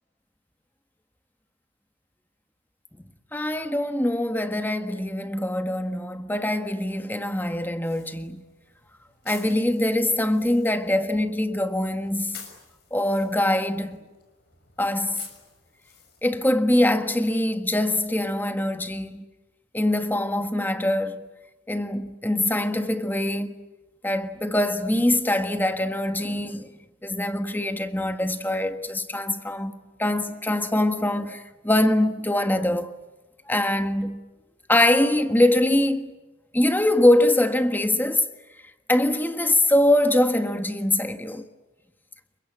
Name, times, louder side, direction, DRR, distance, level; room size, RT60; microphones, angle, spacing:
voice 1, 3.3-8.4 9.2-12.4 12.9-14.0 14.8-15.3 16.2-19.2 19.7-21.3 21.7-23.6 24.0-26.7 27.0-33.0 33.5-34.2 34.7-36.2 36.5-38.3 38.9-41.5, left 1 dB, 10° left, 1.5 m, -23 dB
sound 1, 7.8-16.5, left 7 dB, 55° left, 5.9 m, -50 dB
28.0 x 24.0 x 8.7 m
head